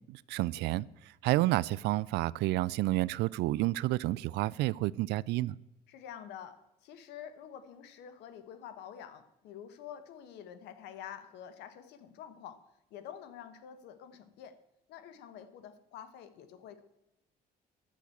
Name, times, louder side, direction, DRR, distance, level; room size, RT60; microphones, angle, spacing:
voice 1, 0.1-0.9 1.2-5.6, right 18 dB, 80° right, 0.4 m, -30 dB
voice 2, 5.9-12.6 12.9-14.6 14.9-16.8, left 9 dB, 85° left, 1.3 m, -48 dB
10.5 x 6.1 x 8.4 m
cardioid pair, 110°, 17 cm